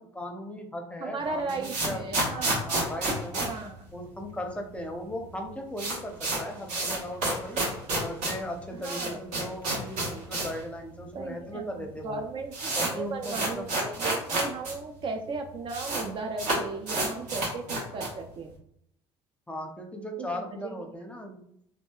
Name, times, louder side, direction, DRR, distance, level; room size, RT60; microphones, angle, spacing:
voice 1, 0.0-3.5 3.9-7.6 8.0-12.2 12.8-13.8 19.5-21.4, equal, 10° left, 3 dB, 0.6 m, -38 dB
voice 2, 1.0-2.7 3.4-3.8 8.8-9.2 11.1-18.5 20.2-20.8, right 4 dB, 40° right, 3 dB, 0.4 m, -36 dB
sound 1, 1.2-4.5 4.7-4.8 5.1-5.2 5.5-10.6 10.9-11.0 11.7-11.8 12.1-14.7 15.0-15.1 15.3-16.0 16.4-18.2, right 2 dB, 65° right, 1.0 m, -30 dB
2.6 x 2.3 x 2.3 m, 0.71 s
hypercardioid pair, 65°, 13 cm